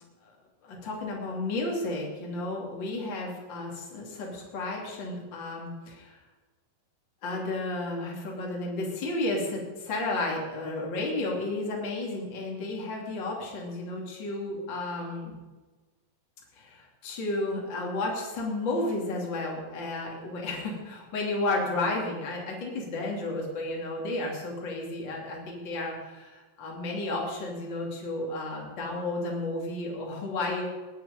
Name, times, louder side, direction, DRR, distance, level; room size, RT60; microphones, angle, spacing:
voice 1, 0.6-6.1 7.2-15.3 16.5-30.7, left 2 dB, 30° left, -2 dB, 2.9 m, -32 dB
19.5 x 9.5 x 5.2 m, 1.2 s
omnidirectional pair, 4.8 m